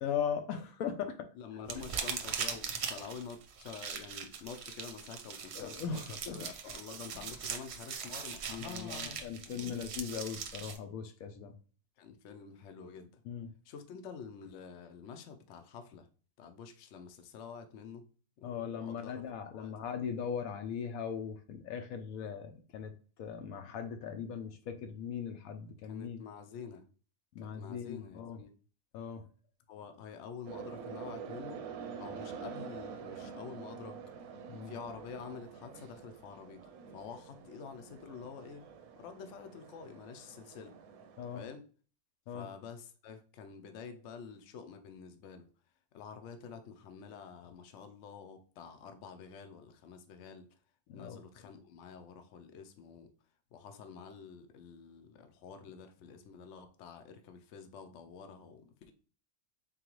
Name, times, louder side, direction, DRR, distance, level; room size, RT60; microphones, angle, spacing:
voice 1, 0.0-1.2 5.5-6.5 7.1-7.2 8.5-11.5 13.3-13.5 18.4-22.9 23.2-26.2 27.3-28.4 28.9-29.2 34.5-34.7 41.2-41.4 42.3-42.5 50.9-51.2, left 7 dB, 85° left, 6 dB, 1.0 m, -39 dB
voice 2, 1.3-9.3 9.5-9.9 10.7-10.8 12.0-13.2 13.6-16.1 16.4-18.0 18.4-19.2 19.5-19.7 25.8-26.9 27.4-28.5 29.7-31.7 32.0-34.0 34.6-36.6 36.9-38.6 39.0-40.7 41.3-41.7 42.3-45.5 45.9-50.5 50.9-53.1 53.5-58.9, left 6 dB, 65° left, 7 dB, 0.9 m, -48 dB
sound 1, 1.7-10.8, right 6 dB, 60° right, 0.8 m, -41 dB
sound 2, 30.4-41.4, right 6 dB, 90° right, 1.0 m, -47 dB
3.8 x 3.2 x 3.0 m, 0.39 s
omnidirectional pair, 1.5 m